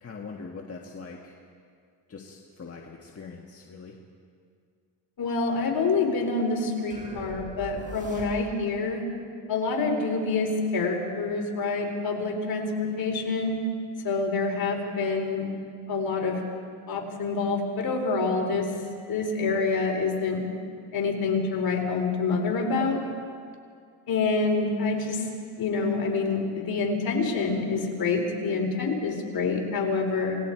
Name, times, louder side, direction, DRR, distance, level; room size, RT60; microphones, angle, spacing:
voice 1, 0.0-1.3 2.1-3.9, left 4 dB, 30° left, -1 dB, 1.7 m, -42 dB
voice 2, 5.2-9.1 9.5-13.6 14.0-15.6 15.9-16.4 16.9-18.8 19.1-20.5 20.9-23.0 24.1-25.3 25.6-30.4, left 4 dB, 50° left, 0 dB, 4.1 m, -27 dB
sound 1, 6.9-8.8, right 2 dB, 15° right, 5.7 m, -41 dB
28.5 x 19.5 x 4.6 m, 2.2 s
cardioid pair, 120°, 45 cm